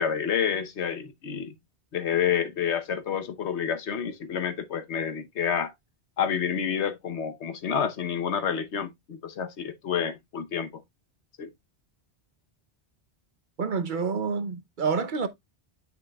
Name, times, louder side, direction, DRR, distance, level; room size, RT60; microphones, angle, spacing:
voice 1, 0.0-1.5 1.9-5.7 6.2-10.7 11.4-11.5, left 7 dB, 85° left, 1.2 m, -29 dB
voice 2, 13.6-15.3, right 5 dB, 50° right, 0.8 m, -28 dB
9.2 x 5.7 x 2.3 m
omnidirectional pair, 1.1 m